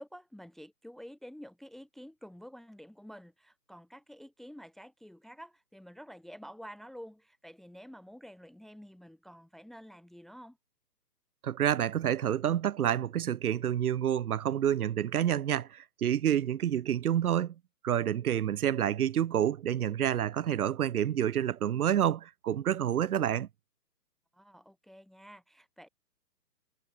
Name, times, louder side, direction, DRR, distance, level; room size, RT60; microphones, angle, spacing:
voice 1, 0.0-10.6 24.3-25.9, equal, ahead, 1.7 m, -49 dB
voice 2, 11.4-17.5 17.8-23.5, right 10 dB, 60° right, 0.7 m, -28 dB
hypercardioid pair, 145°, 50 cm